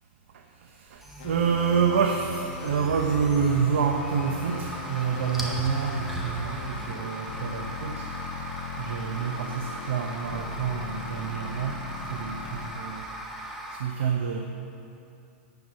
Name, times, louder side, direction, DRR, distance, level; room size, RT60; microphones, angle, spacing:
voice 1, 0.6-8.1 8.8-11.8 12.1-13.1 13.7-14.5, right 6 dB, 75° right, 3 dB, 0.8 m, -28 dB
sound 1, 0.9-13.8, right 1 dB, 5° right, 0.8 m, -39 dB
sound 2, 1.2-12.7, left 5 dB, 60° left, 1.4 m, -39 dB
11.5 x 4.7 x 8.4 m, 2.7 s
supercardioid pair, 175°, 7 cm